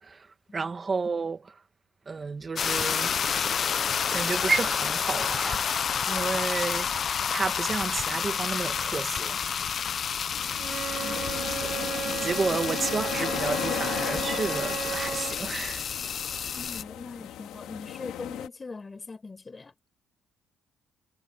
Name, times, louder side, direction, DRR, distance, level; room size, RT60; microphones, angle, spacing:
voice 1, 0.0-1.6 2.1-3.8 4.1-7.0 7.3-9.4 9.6-9.8 11.6-11.8 12.2-15.9, right 4 dB, 35° right, 2.1 m, -31 dB
sound 1, 2.6-16.8, left 7 dB, 50° left, 0.6 m, -30 dB
sound 2, 10.3-18.5, left 12 dB, 85° left, 3.0 m, -36 dB
Wind instrument woodwind instrument, 10.6-15.4, right 8 dB, 65° right, 1.8 m, -34 dB
voice 2, 11.0-11.3 16.6-19.7, left 4 dB, 30° left, 5.4 m, -41 dB
cardioid pair, 90°, 0 cm